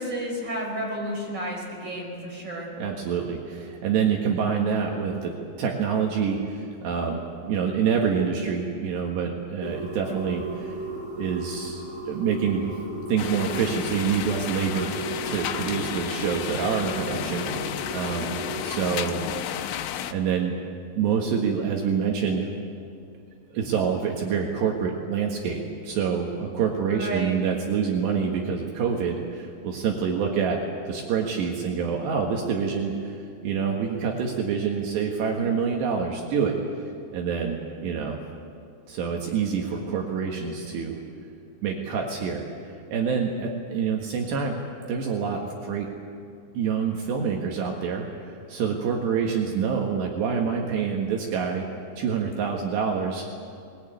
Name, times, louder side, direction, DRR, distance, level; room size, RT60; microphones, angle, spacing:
voice 1, 0.0-2.7 27.0-27.4, right 1 dB, 15° right, -1 dB, 5.3 m, -31 dB
voice 2, 2.8-10.7 11.2-12.8 13.1-15.0 15.2-19.2 19.6-19.8 20.1-20.6 21.0-22.5 23.5-33.2 33.4-36.6 37.1-38.2 38.9-41.0 41.6-42.5 42.9-44.6 44.9-45.9 46.6-51.7 52.0-53.3, right 6 dB, 70° right, 0 dB, 3.7 m, -27 dB
sound 1, 9.6-18.8, right 1 dB, 5° left, 7.1 m, -36 dB
sound 2, 13.2-20.1, left 10 dB, 85° left, 3.3 m, -32 dB
21.5 x 20.5 x 9.3 m, 2.3 s
omnidirectional pair, 5.3 m